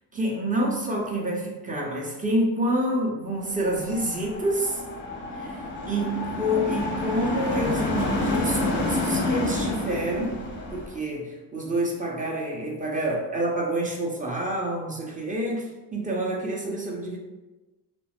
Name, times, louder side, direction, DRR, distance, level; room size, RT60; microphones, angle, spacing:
voice 1, 0.1-4.8 5.3-5.6 5.8-17.2, right 1 dB, 15° right, -1 dB, 0.6 m, -28 dB
sound 1, 3.5-11.0, left 2 dB, 25° left, 0.6 m, -29 dB
2.1 x 2.0 x 2.8 m, 1.1 s
supercardioid pair, 65°, 48 cm